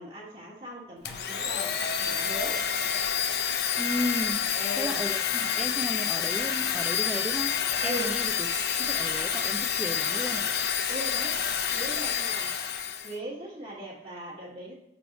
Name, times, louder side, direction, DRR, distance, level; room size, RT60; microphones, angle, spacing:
voice 1, 0.0-2.7 4.5-5.0 7.8-8.1 10.9-12.5 13.0-14.7, right 1 dB, 35° right, -6 dB, 1.2 m, -39 dB
Domestic sounds home sounds, 1.1-13.2, left 8 dB, 65° left, 0.5 m, -28 dB
voice 2, 3.8-4.5 4.8-8.5 8.8-10.5, equal, 5° right, 7 dB, 0.3 m, -34 dB
6.1 x 3.4 x 5.0 m, 0.82 s
head